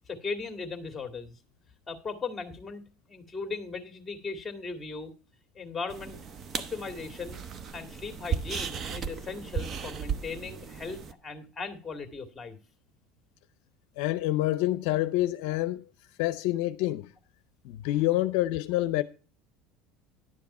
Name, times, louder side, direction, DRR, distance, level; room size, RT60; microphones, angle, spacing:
voice 1, 0.1-1.4 1.9-2.8 3.1-5.1 5.6-6.2 6.6-7.4 7.7-12.6, left 4 dB, 20° left, 2.2 m, -38 dB
sound 1, 5.9-11.1, right 7 dB, 40° right, 1.0 m, -36 dB
voice 2, 14.0-15.8 16.2-17.1 17.6-19.0, left 16 dB, 75° left, 0.6 m, -27 dB
11.0 x 7.0 x 4.3 m
supercardioid pair, 95°, 0 cm